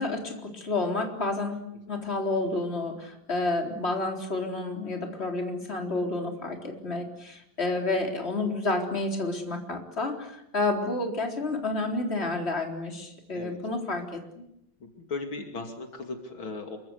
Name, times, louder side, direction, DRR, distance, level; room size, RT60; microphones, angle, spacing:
voice 1, 0.0-14.4, left 2 dB, 30° left, 2 dB, 4.2 m, -30 dB
voice 2, 14.8-16.8, left 3 dB, 70° left, 4 dB, 3.5 m, -37 dB
28.0 x 24.0 x 8.3 m, 0.81 s
omnidirectional pair, 2.3 m